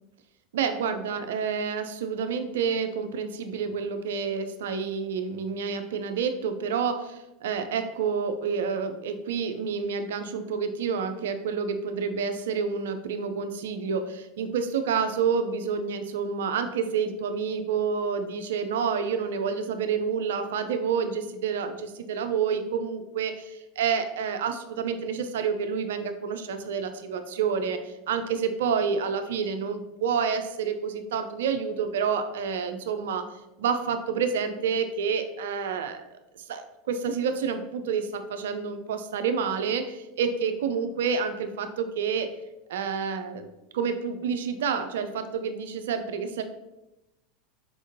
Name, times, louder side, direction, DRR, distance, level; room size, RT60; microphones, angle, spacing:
voice 1, 0.5-33.3 33.6-36.0 36.5-42.3 42.7-43.5 43.7-46.4, right 6 dB, 65° right, 9 dB, 0.4 m, -29 dB
4.3 x 3.5 x 2.7 m, 0.96 s
figure-of-eight pair, 80°, 0 cm